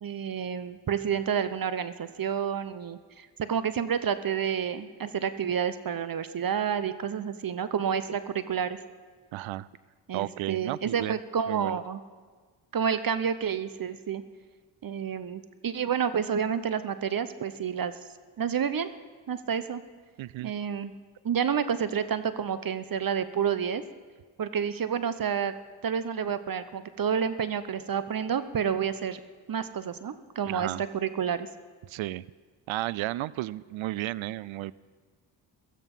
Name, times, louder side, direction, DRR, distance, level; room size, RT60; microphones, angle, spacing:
voice 1, 0.0-8.8 10.1-12.0 12.7-14.2 14.8-17.9 18.4-18.9 19.3-19.8 20.4-20.9 21.2-23.8 24.4-25.5 25.8-29.2 29.5-31.5, right 7 dB, 45° right, 13 dB, 0.9 m, -29 dB
voice 2, 9.3-9.7 10.1-11.2 11.5-11.8 20.2-20.5 30.5-30.8 31.9-32.2 32.7-34.7, right 16 dB, 75° right, 21 dB, 0.5 m, -33 dB
16.0 x 13.5 x 5.5 m, 1.5 s
supercardioid pair, 55°, 49 cm